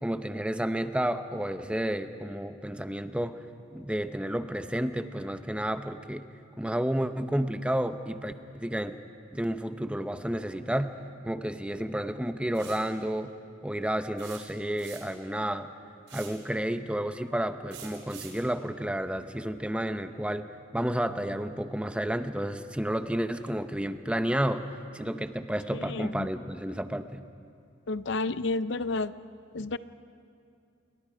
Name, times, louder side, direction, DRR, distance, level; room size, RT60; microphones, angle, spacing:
voice 1, 0.0-3.4 3.7-6.3 6.6-8.9 9.3-11.0 11.2-13.3 13.6-15.7 16.1-20.5 20.7-27.2, right 1 dB, 5° right, 9 dB, 0.7 m, -31 dB
sound 1, 12.5-12.9 14.2-15.3 16.1-16.4 17.7-18.4, right 8 dB, 80° right, 4.2 m, -46 dB
voice 2, 25.7-26.3 27.9-29.1 29.5-29.8, left 3 dB, 65° left, 14 dB, 0.6 m, -31 dB
29.0 x 22.5 x 5.1 m, 2.4 s
head